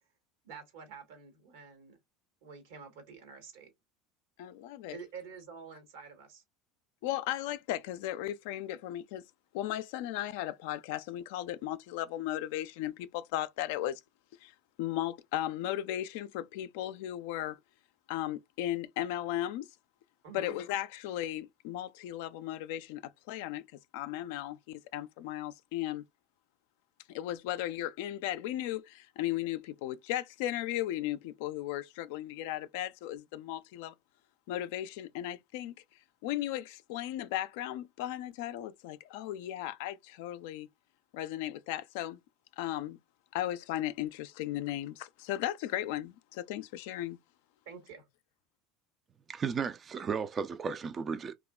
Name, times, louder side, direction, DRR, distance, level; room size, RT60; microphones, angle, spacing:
voice 1, 0.4-2.0 2.4-3.7 4.9-6.4 20.2-20.6 47.6-48.1, right 5 dB, 75° right, 1.2 m, -48 dB
voice 2, 4.4-5.0 7.0-9.2 9.5-14.0 14.4-17.6 18.1-19.7 20.3-23.7 23.9-26.0 27.1-33.9 34.5-35.7 36.2-40.7 41.1-42.2 42.6-43.0 43.3-47.2, left 13 dB, 75° left, 0.3 m, -36 dB
voice 3, 49.3-51.3, right 6 dB, 35° right, 0.3 m, -34 dB
2.8 x 2.3 x 2.3 m
hypercardioid pair, 90°, 0 cm